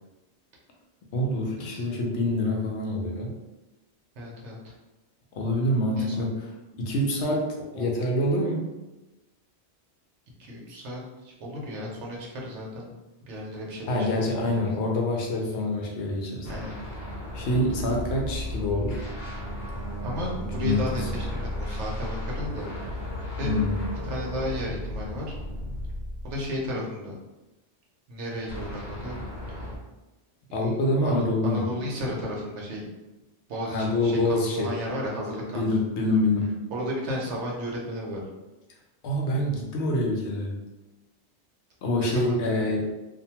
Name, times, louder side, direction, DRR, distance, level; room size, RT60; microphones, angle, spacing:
voice 1, 1.1-3.3 5.3-6.3 6.8-8.7 13.9-16.5 17.3-19.0 20.6-20.9 23.4-23.8 30.5-31.6 33.6-34.7 35.5-36.5 39.0-40.6 41.8-42.9, left 1 dB, 75° left, -1 dB, 0.9 m, -26 dB
voice 2, 4.1-4.7 6.0-6.3 7.7-7.9 10.4-12.9 13.2-14.6 16.5-16.8 20.0-22.7 23.3-23.6 24.0-25.3 26.2-27.1 28.1-29.2 29.5-29.7 30.5-32.9 33.5-35.7 36.7-38.2 42.0-42.5, equal, 75° right, -3 dB, 1.0 m, -34 dB
sound 1, 16.4-26.7 28.5-29.8, left 1 dB, 45° left, 0.9 m, -34 dB
2.6 x 2.2 x 2.8 m, 1.0 s
omnidirectional pair, 1.2 m